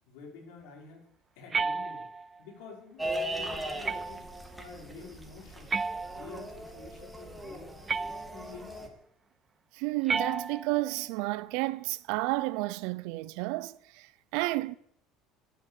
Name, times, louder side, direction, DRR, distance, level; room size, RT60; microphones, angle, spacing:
voice 1, 0.1-1.1 1.4-4.3 4.6-5.7 6.1-7.8 8.0-8.9, left 5 dB, 80° left, 5.3 m, -49 dB
sound 1, 1.5-2.4 3.8-4.4 5.7-6.6 7.9-8.6 10.1-10.9, right 4 dB, 25° right, 0.5 m, -33 dB
sound 2, 3.0-8.9, right 1 dB, 5° right, 2.6 m, -39 dB
voice 2, 9.7-14.7, right 20 dB, 80° right, 0.7 m, -31 dB
13.0 x 9.0 x 8.4 m
cardioid pair, 120°, 0 cm